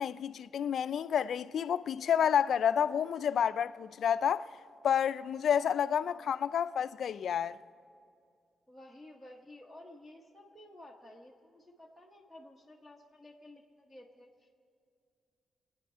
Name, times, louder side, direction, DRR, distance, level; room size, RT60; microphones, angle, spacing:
voice 1, 0.0-4.5 4.8-7.6, left 8 dB, 60° left, 0.3 m, -29 dB
voice 2, 6.0-6.6 8.7-14.5, left 1 dB, 5° right, 0.9 m, -54 dB
25.0 x 9.3 x 5.5 m
wide cardioid pair, 165°, 0 cm